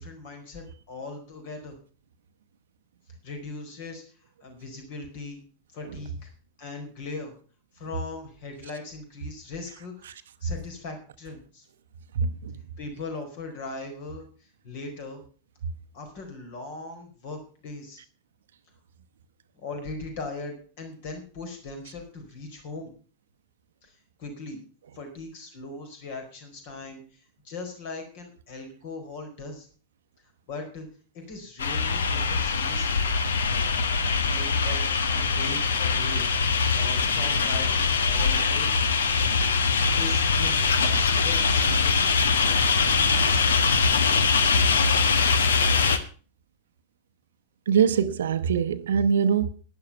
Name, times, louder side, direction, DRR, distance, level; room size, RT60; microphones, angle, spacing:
voice 1, 0.0-1.8 3.2-4.0 4.4-5.4 5.7-6.3 6.6-7.3 7.7-11.7 12.8-15.2 15.9-18.0 19.6-22.9 23.8-23.9 24.2-24.6 24.9-29.7 30.5-30.9 31.1-33.0 34.2-38.7 40.0-43.5, left 3 dB, 50° left, 4.5 m, -39 dB
voice 2, 12.1-12.6 47.7-49.5, right 7 dB, 65° right, 0.8 m, -23 dB
sound 1, 31.6-46.0, left 5 dB, 65° left, 1.2 m, -23 dB
11.5 x 10.5 x 5.5 m
figure-of-eight pair, 90°, 0 cm